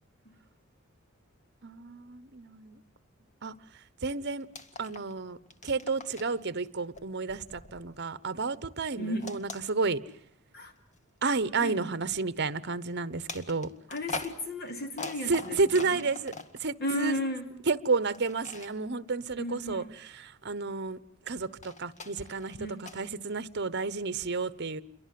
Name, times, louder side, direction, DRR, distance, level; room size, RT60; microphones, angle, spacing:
voice 1, 1.6-2.8 3.4-3.5 4.0-4.5 4.8-5.4 5.6-10.0 11.2-13.7 15.3-16.3 16.6-17.2 17.7-21.0 21.3-24.8, right 4 dB, 55° right, 15 dB, 1.1 m, -31 dB
sound 1, 4.4-5.2 5.4-6.4 6.9-8.4 9.2-10.3 10.9-11.1 13.3-16.6 18.1-18.7 21.3-23.1, left 3 dB, 35° left, 1.9 m, -42 dB
voice 2, 9.0-9.3 10.5-10.7 11.6-11.8 13.9-16.1 16.8-17.4 19.4-19.9 22.6-22.9, equal, 50° left, 6 dB, 2.9 m, -34 dB
28.5 x 23.0 x 7.7 m, 0.65 s
head